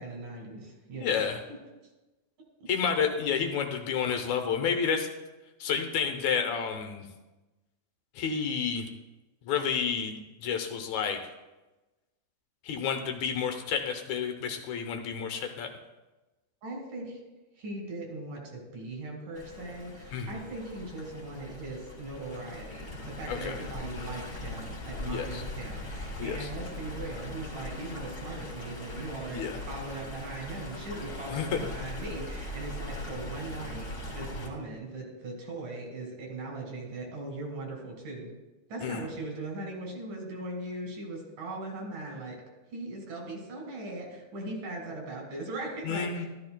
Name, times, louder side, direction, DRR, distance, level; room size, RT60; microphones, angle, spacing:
voice 1, 0.0-1.2 1.5-1.6 16.6-17.2 17.6-38.3 38.7-42.4 42.7-46.3, right 2 dB, 80° right, 0 dB, 3.7 m, -39 dB
voice 2, 1.0-1.4 2.7-5.1 5.6-7.1 8.2-8.9 9.5-11.2 12.6-15.7 20.1-20.4 23.3-23.6 25.0-25.4 26.2-26.5 29.3-29.6 31.3-31.5 38.8-39.0 45.8-46.3, left 6 dB, 75° left, 5 dB, 2.0 m, -30 dB
Stream, 19.3-34.5, left 1 dB, 30° left, 1.7 m, -40 dB
12.5 x 12.5 x 2.2 m, 1.1 s
omnidirectional pair, 3.6 m